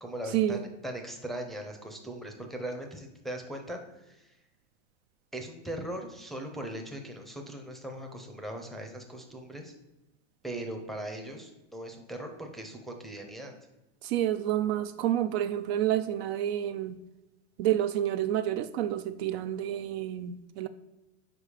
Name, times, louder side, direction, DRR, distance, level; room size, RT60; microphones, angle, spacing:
voice 1, 0.0-4.4 5.3-9.7 10.4-13.5, right 1 dB, ahead, 2 dB, 0.6 m, -39 dB
voice 2, 14.0-17.0 17.6-20.7, right 11 dB, 55° right, 11 dB, 0.5 m, -29 dB
5.1 x 4.7 x 4.9 m, 1.0 s
supercardioid pair, 130°, 38 cm